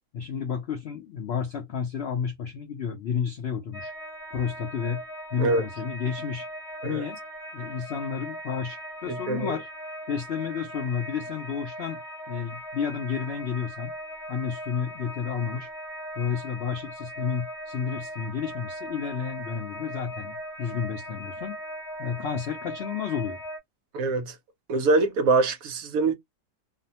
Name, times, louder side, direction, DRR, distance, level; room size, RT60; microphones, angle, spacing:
voice 1, 0.1-3.9 4.3-5.0 5.3-6.5 6.8-7.2 7.5-9.7 10.1-12.0 12.3-13.9 14.3-15.7 16.1-21.5 22.0-23.4, left 7 dB, 75° left, 0.6 m, -31 dB
sound 1, 3.7-23.6, equal, 15° left, 0.8 m, -39 dB
voice 2, 9.1-9.6 23.9-24.4 24.7-26.1, right 3 dB, 70° right, 0.9 m, -24 dB
2.6 x 2.1 x 2.7 m
omnidirectional pair, 1.7 m